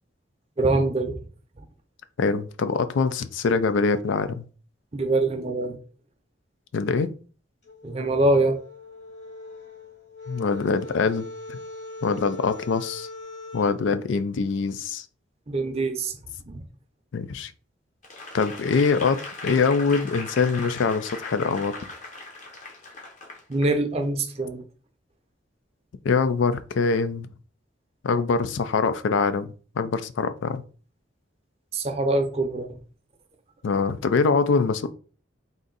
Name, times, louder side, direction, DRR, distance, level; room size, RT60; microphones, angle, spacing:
voice 1, 0.6-1.2 4.9-5.8 7.8-8.6 15.5-16.2 16.5-16.6 23.5-24.6 31.7-32.7, right 2 dB, 30° right, 0.5 m, -24 dB
voice 2, 2.2-4.4 6.7-7.1 10.3-11.6 12.0-13.1 13.5-15.0 17.1-17.5 18.3-21.8 26.0-27.3 28.0-30.6 33.6-34.9, left 4 dB, 80° left, 0.4 m, -24 dB
sound 1, 7.6-13.8, left 2 dB, 60° left, 1.9 m, -41 dB
Applause / Crowd, 18.0-23.8 24.3-24.4, left 3 dB, 40° left, 0.7 m, -39 dB
3.7 x 2.6 x 3.9 m
head